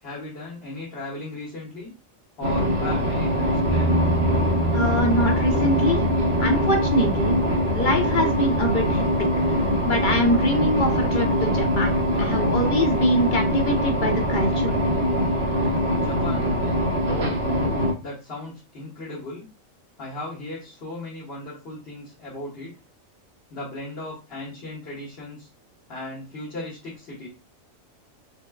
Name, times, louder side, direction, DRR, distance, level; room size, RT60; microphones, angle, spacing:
voice 1, 0.0-1.9 2.4-4.0 16.0-16.5 17.1-17.4 18.0-19.4 20.0-22.7 23.5-25.5 25.9-27.3, left 2 dB, 50° left, -9 dB, 1.4 m, -36 dB
sound 1, 2.4-17.9, equal, 55° right, 1.0 m, -23 dB
sound 2, 3.7-12.6, right 1 dB, 5° left, 0.5 m, -31 dB
voice 2, 4.7-6.0 6.4-7.4 7.7-9.3 9.9-14.7, left 1 dB, 65° left, 3 dB, 0.5 m, -24 dB
4.4 x 2.1 x 2.3 m, 0.30 s
omnidirectional pair, 1.4 m